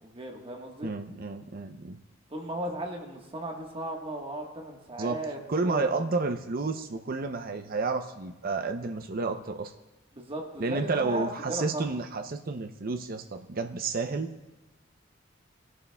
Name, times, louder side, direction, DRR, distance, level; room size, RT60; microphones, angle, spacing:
voice 1, 0.0-0.9 2.3-6.1 10.1-11.9, right 1 dB, 30° right, 1 dB, 1.4 m, -36 dB
voice 2, 0.8-2.0 5.0-5.2 5.5-9.7 10.6-14.3, right 3 dB, 50° right, 6 dB, 0.6 m, -31 dB
20.0 x 11.0 x 2.3 m, 1.1 s
head